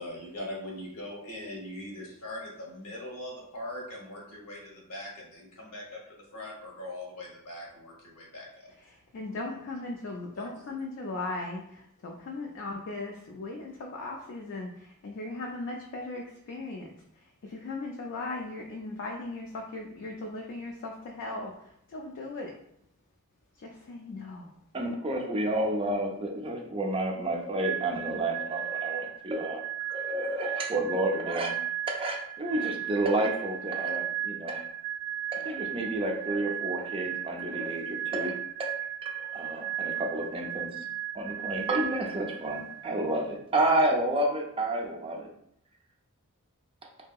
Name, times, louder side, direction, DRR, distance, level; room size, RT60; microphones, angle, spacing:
voice 1, 0.0-6.0 6.3-8.7 10.4-10.5, left 1 dB, 80° left, -2 dB, 0.9 m, -41 dB
voice 2, 8.8-16.9 17.4-21.5 21.9-22.5 23.6-24.5, left 2 dB, 55° left, 0 dB, 0.3 m, -38 dB
voice 3, 24.7-29.6 29.9-31.6 31.9-34.6 35.3-38.7 39.0-40.7 41.1-45.3, right 1 dB, 25° right, 1 dB, 0.4 m, -30 dB
sound 1, 27.6-43.2, right 10 dB, 85° right, 0.4 m, -36 dB
2.7 x 2.7 x 2.3 m, 0.72 s
head